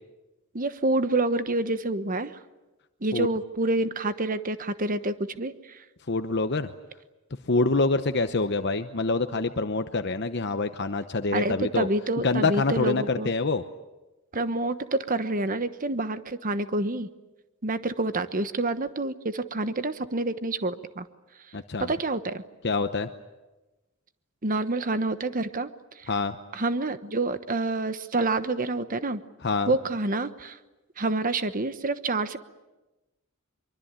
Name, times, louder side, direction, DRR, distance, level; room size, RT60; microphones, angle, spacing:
voice 1, 0.5-2.4 3.0-5.8 11.3-13.3 14.3-17.1 17.6-21.1 21.8-22.4 24.4-25.7 26.0-26.1 26.5-29.2 29.7-30.6 31.0-32.4, right 2 dB, 40° right, 11 dB, 1.2 m, -28 dB
voice 2, 6.1-6.7 7.4-11.9 12.2-13.6 21.5-21.9 22.6-23.1 26.1-26.3 29.4-29.7, left 3 dB, 55° left, 8 dB, 0.9 m, -26 dB
24.0 x 24.0 x 9.0 m, 1.1 s
head